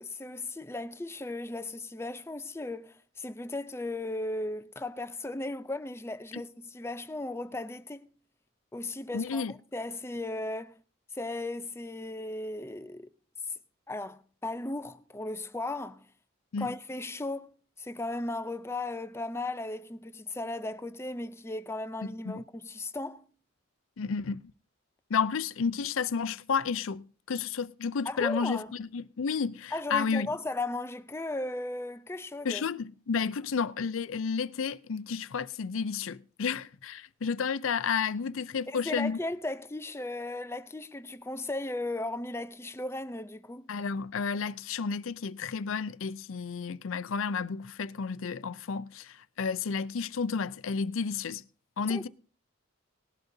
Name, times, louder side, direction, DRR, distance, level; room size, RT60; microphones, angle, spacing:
voice 1, 0.0-8.1 8.7-10.8 11.1-13.1 13.9-16.1 16.6-23.3 28.1-28.7 29.7-32.6 38.7-43.7 51.9-52.1, left 2 dB, 10° left, 0.5 m, -36 dB
voice 2, 9.1-9.5 16.5-16.7 22.3-22.4 24.0-24.5 25.1-30.3 32.4-39.2 43.7-51.4 51.8-52.1, left 5 dB, 80° left, 0.5 m, -31 dB
18.5 x 11.5 x 2.7 m
head